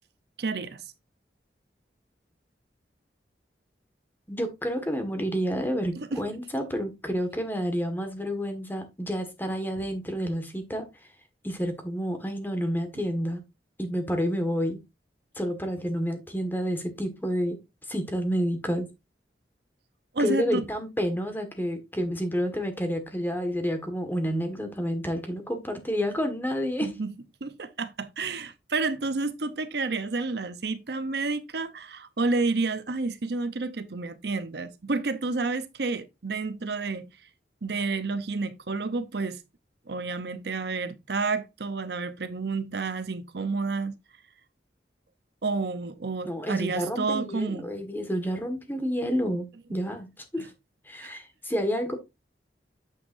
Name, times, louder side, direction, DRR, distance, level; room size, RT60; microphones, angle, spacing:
voice 1, 0.4-0.8 6.0-6.2 20.1-20.7 26.8-27.1 27.4-37.0 37.6-39.4 39.9-43.9 45.4-47.7 50.4-50.5 51.0-51.1, right 3 dB, 65° right, 0.7 m, -30 dB
voice 2, 4.3-10.8 11.4-13.4 13.8-14.8 15.3-17.6 17.9-18.9 20.2-26.9 46.3-50.1 50.3-50.5 50.9-52.0, equal, 10° left, 1.6 m, -29 dB
9.1 x 7.4 x 2.6 m
head